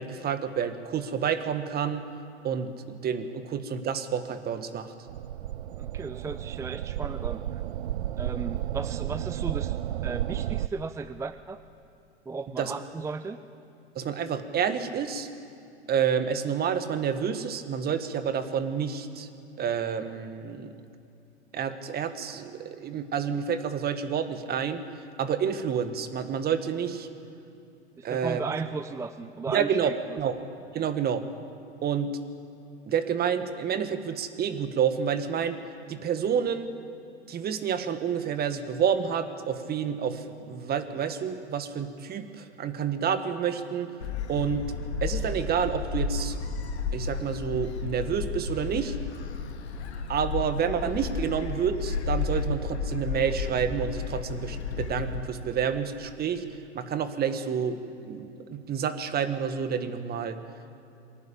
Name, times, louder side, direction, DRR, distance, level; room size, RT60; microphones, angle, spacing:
voice 1, 0.0-2.1 2.4-4.9 12.6-12.7 14.0-15.3 15.9-19.3 19.6-20.7 21.5-24.8 25.2-27.1 28.0-28.4 29.5-29.9 30.2-30.4 30.7-31.2 31.8-32.1 32.9-35.6 35.9-36.7 37.3-43.9 44.3-44.7 45.0-46.4 46.9-49.0 50.1-56.5 56.7-60.4, right 7 dB, 30° right, 10 dB, 1.7 m, -29 dB
sound 1, 5.1-10.7, right 12 dB, 70° right, 0.7 m, -32 dB
voice 2, 5.8-7.4 8.2-9.8 10.0-11.6 12.3-13.4 28.0-29.9, right 4 dB, 10° right, 12 dB, 0.5 m, -35 dB
Gull seagull, 44.0-55.2, left 4 dB, 70° left, 2.9 m, -32 dB
23.0 x 18.0 x 8.7 m, 2.6 s
hypercardioid pair, 95°, 33 cm